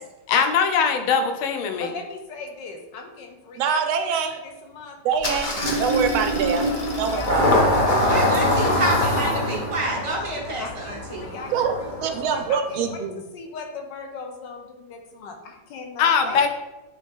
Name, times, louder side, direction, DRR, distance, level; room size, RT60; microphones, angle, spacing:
voice 1, 0.3-1.9 16.0-16.5, left 6 dB, 90° left, 6 dB, 1.5 m, -21 dB
voice 2, 1.8-3.8 4.4-5.0 5.6-6.0 6.6-6.7 7.1-8.1 8.4-9.5 10.6-16.5, left 4 dB, 65° left, 3 dB, 1.4 m, -38 dB
voice 3, 3.6-4.4 5.0-5.5 5.8-6.7 7.0-7.5 11.5-11.7 12.0-13.2, right 7 dB, 85° right, 7 dB, 1.5 m, -24 dB
Engine starting, 5.2-12.5, left 1 dB, 45° left, 0.6 m, -23 dB
voice 4, 8.0-11.3, right 1 dB, 50° right, -2 dB, 0.3 m, -28 dB
9.3 x 3.2 x 3.6 m, 1.0 s
omnidirectional pair, 2.2 m